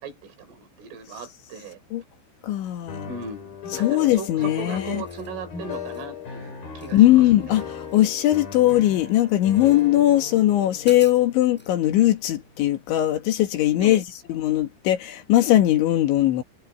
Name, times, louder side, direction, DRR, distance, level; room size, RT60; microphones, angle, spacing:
voice 1, 0.0-1.8 3.1-7.6 13.8-14.0, right 5 dB, 75° right, 6.7 m, -38 dB
voice 2, 2.4-3.1 3.8-5.0 6.9-14.0 14.3-16.4, left 14 dB, 70° left, 4.0 m, -20 dB
sound 1, 2.9-12.8, left 6 dB, 45° left, 7.2 m, -38 dB
sound 2, 5.0-5.3 5.7-6.1 6.8-7.4 7.7-8.9 9.5-9.9 10.4-10.5 10.8-11.7, equal, ahead, 7.1 m, -47 dB
omnidirectional pair, 5.7 m